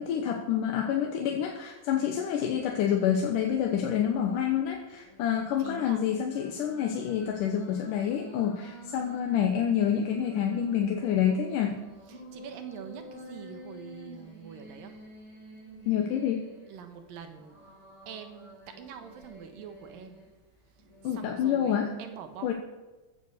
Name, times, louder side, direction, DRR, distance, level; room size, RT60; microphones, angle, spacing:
voice 1, 0.0-11.8 15.9-16.5 21.0-21.9 22.4-22.5, left 9 dB, 70° left, 3 dB, 2.4 m, -28 dB
voice 2, 1.9-2.3 5.6-6.0 8.7-9.0 12.2-15.0 16.7-17.6 18.1-20.2 21.1-22.5, right 8 dB, 75° right, 7 dB, 2.8 m, -45 dB
sound 1, 2.4-4.4 4.9-9.4 9.9-16.8 17.4-20.3 20.8-21.1, equal, 5° left, 4.5 m, -49 dB
15.0 x 9.6 x 6.7 m, 1.2 s
omnidirectional pair, 4.2 m